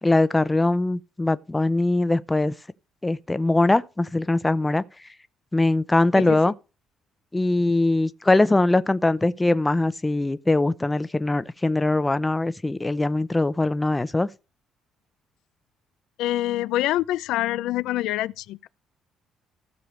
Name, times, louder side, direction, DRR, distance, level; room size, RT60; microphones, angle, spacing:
voice 1, 0.0-2.5 3.0-4.8 5.5-6.5 7.3-14.3, left 2 dB, 10° left, 0.6 m, -22 dB
voice 2, 6.2-6.5 16.2-18.7, left 15 dB, 90° left, 0.4 m, -26 dB
15.5 x 6.5 x 3.2 m
cardioid pair, 130°, 0 cm